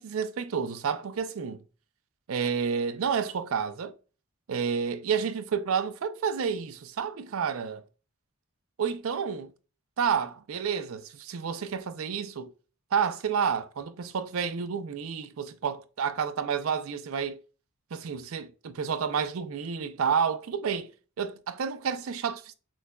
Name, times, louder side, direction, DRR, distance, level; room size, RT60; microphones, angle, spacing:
voice 1, 0.0-1.6 2.3-3.9 4.5-7.8 8.8-9.5 10.0-12.5 12.9-17.4 17.9-20.9 21.2-22.5, right 6 dB, 70° right, 0.4 m, -30 dB
6.3 x 2.2 x 2.2 m
head